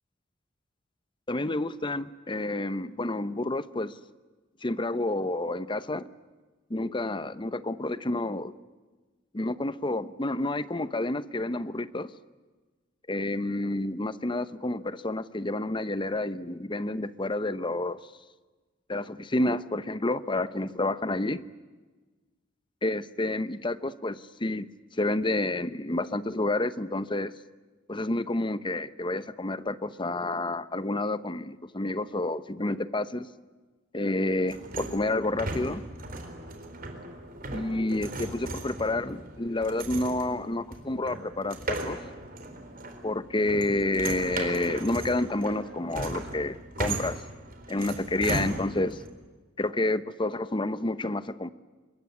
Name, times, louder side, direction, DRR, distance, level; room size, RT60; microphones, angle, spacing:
voice 1, 1.3-3.9 4.6-6.1 6.7-8.5 9.3-12.1 13.1-18.0 18.9-21.4 22.8-24.7 25.0-27.4 27.9-33.3 33.9-35.8 37.5-42.0 43.0-47.2 47.7-49.0 49.6-51.5, left 2 dB, 25° left, 14 dB, 0.9 m, -29 dB
sound 1, 34.5-49.1, right 2 dB, 50° right, 4.1 m, -37 dB
25.0 x 22.0 x 9.6 m, 1.3 s
head